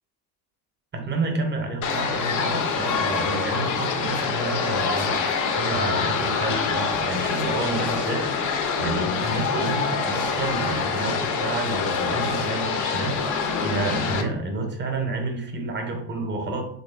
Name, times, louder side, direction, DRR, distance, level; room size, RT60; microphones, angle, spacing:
voice 1, 0.9-13.4 13.6-16.6, right 2 dB, 25° right, 3 dB, 0.6 m, -29 dB
sound 1, 1.8-14.2, left 5 dB, 40° left, 0.5 m, -25 dB
3.0 x 2.4 x 2.3 m, 0.69 s
hypercardioid pair, 70°, 49 cm